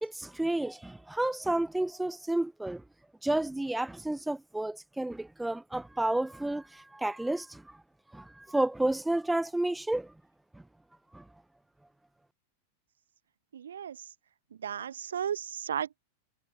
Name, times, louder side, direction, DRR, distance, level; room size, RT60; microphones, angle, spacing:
voice 1, 0.0-2.8 3.2-7.6 8.1-10.1 11.1-11.2, right 1 dB, 5° right, 1.1 m, -31 dB
voice 2, 13.5-14.0 14.6-16.0, right 8 dB, 65° right, 1.1 m, -34 dB
figure-of-eight pair, 90°, 0 cm